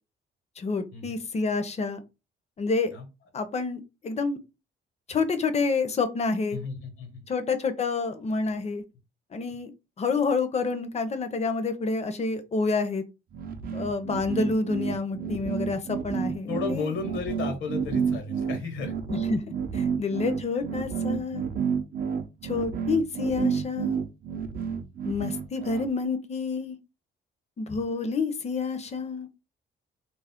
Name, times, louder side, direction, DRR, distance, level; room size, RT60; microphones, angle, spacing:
voice 1, 0.6-2.0 2.6-2.9 3.3-4.4 5.1-6.6 7.3-8.8 9.3-9.7 10.0-13.0 13.7-16.9 19.1-19.4 19.7-21.5 22.4-24.0 25.0-26.8 27.6-29.3, left 4 dB, 35° left, 0.5 m, -28 dB
voice 2, 6.5-7.3 16.5-18.9 20.5-20.6, left 5 dB, 75° left, 1.0 m, -33 dB
sound 1, 13.3-25.9, right 7 dB, 50° right, 0.5 m, -30 dB
2.3 x 2.0 x 3.5 m
cardioid pair, 90°, 20 cm